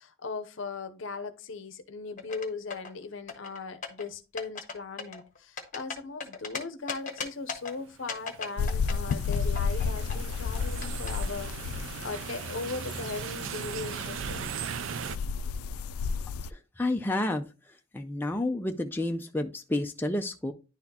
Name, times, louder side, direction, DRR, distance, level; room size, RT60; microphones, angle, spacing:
voice 1, 0.0-14.7, left 4 dB, 65° left, 0.7 m, -38 dB
sound 1, 2.2-2.9 3.3-4.0 4.4-4.7 5.0-6.6 6.9-7.7 8.1-9.8 10.1-11.1, left 5 dB, 40° left, 1.1 m, -36 dB
sound 2, 7.9-15.2, right 7 dB, 65° right, 0.4 m, -38 dB
sound 3, 8.6-16.5, left 5 dB, 90° left, 0.3 m, -33 dB
voice 2, 16.5-17.5 17.9-20.5, left 1 dB, 10° left, 0.4 m, -30 dB
10.5 x 4.1 x 2.8 m
head